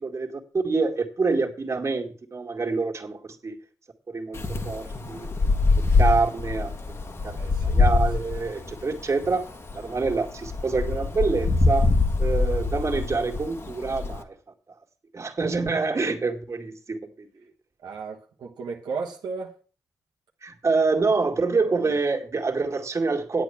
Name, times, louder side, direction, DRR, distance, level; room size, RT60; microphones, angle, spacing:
voice 1, 0.0-3.6 4.1-5.3 6.0-6.7 7.2-7.4 7.6-11.9 12.2-14.4 15.1-17.3 20.4-23.4, right 4 dB, 40° right, 2.3 m, -26 dB
Wind, 4.3-14.2, left 3 dB, 40° left, 1.7 m, -24 dB
voice 2, 7.4-7.8 17.8-19.6 21.6-22.0, right 4 dB, 80° right, 1.3 m, -35 dB
10.0 x 8.5 x 6.0 m
cardioid pair, 70°, 7 cm